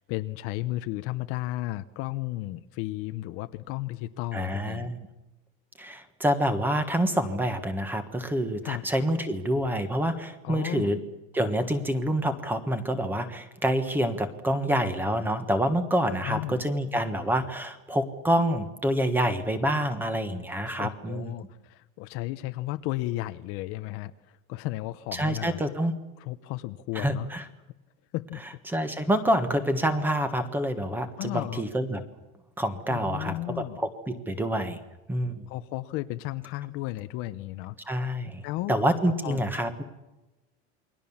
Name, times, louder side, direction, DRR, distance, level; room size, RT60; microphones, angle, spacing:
voice 1, 0.1-4.9 8.6-8.8 10.4-10.9 16.2-16.6 20.7-24.1 24.5-25.6 26.2-27.3 28.1-28.4 31.2-31.6 32.9-33.8 35.5-37.8 38.4-38.7 39.2-39.4, left 17 dB, 40° left, 10 dB, 0.8 m, -34 dB
voice 2, 4.3-5.0 5.8-11.0 11.3-21.3 25.1-25.9 26.9-27.4 28.7-32.0 32.6-34.8 35.1-35.5 37.8-38.4 38.7-39.8, equal, 5° right, 10 dB, 1.5 m, -27 dB
28.5 x 22.0 x 7.2 m, 1.0 s
cardioid pair, 175°, 33 cm